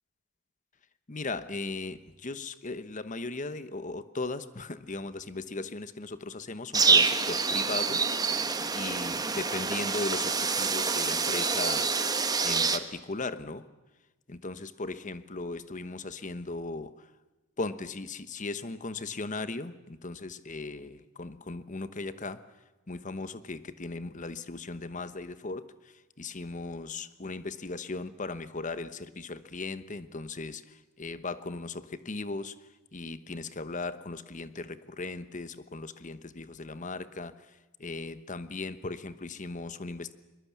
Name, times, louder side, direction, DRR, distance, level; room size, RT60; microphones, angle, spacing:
voice 1, 1.1-8.4 8.7-11.9 12.4-13.6 14.3-17.1 17.6-22.4 22.9-32.6 32.9-37.4 37.8-40.1, left 3 dB, 40° left, 13 dB, 1.1 m, -37 dB
sound 1, 6.7-12.8, right 4 dB, 20° right, 1.2 m, -26 dB
22.5 x 22.5 x 8.4 m, 1.1 s
head